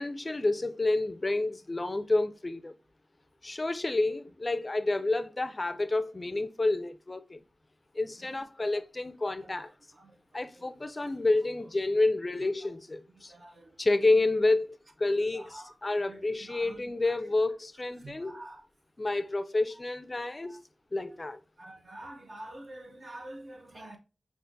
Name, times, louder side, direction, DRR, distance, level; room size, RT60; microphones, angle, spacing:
voice 1, 0.0-2.7 3.4-7.4 7.9-9.7 10.3-13.3 13.8-18.4 19.0-20.6 20.9-21.4, left 2 dB, 40° left, 0.4 m, -29 dB
voice 2, 8.2-8.8 9.2-9.5 9.9-10.2 10.5-11.1 12.4-12.5 13.3-13.8 14.1-14.3 15.3-17.2 18.0-18.7 20.4-20.6 21.6-24.0, right 1 dB, 60° right, 0.9 m, -48 dB
5.6 x 2.4 x 2.6 m
cardioid pair, 50°, 0 cm